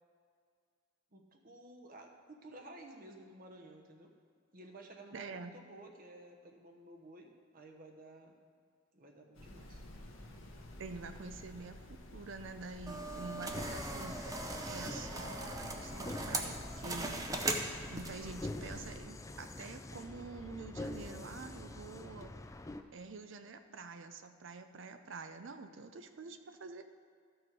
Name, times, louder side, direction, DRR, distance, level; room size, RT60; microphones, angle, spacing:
voice 1, 1.1-4.1 4.5-8.4 8.9-9.8, right 2 dB, 45° right, 2 dB, 1.0 m, -54 dB
voice 2, 5.1-5.5 10.8-14.2 14.7-17.2 17.9-22.3 22.9-26.8, right 4 dB, 65° right, 8 dB, 0.6 m, -47 dB
sound 1, 9.3-19.0, left 1 dB, 85° left, 1.3 m, -51 dB
sound 2, 12.9-18.3, right 2 dB, 15° right, 0.7 m, -39 dB
sound 3, 13.5-22.8, left 2 dB, 15° left, 0.4 m, -45 dB
13.0 x 6.2 x 4.8 m, 2.1 s
head